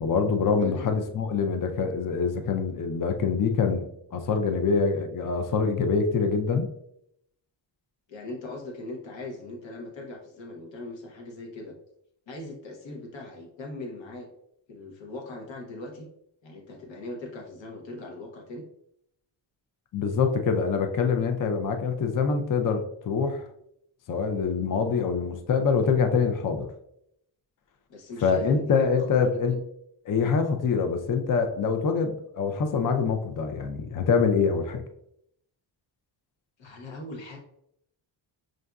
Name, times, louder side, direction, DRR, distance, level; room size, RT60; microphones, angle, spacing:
voice 1, 0.0-3.9 4.1-6.7 19.9-23.4 24.1-26.7 28.2-29.5 30.1-34.8, left 5 dB, 45° left, 6 dB, 0.5 m, -25 dB
voice 2, 8.1-11.7 12.3-14.3 14.7-16.1 16.4-18.6 27.9-29.6 36.6-37.4, left 2 dB, 65° left, 0 dB, 0.9 m, -40 dB
6.3 x 2.5 x 2.3 m, 0.75 s
wide cardioid pair, 150°, 48 cm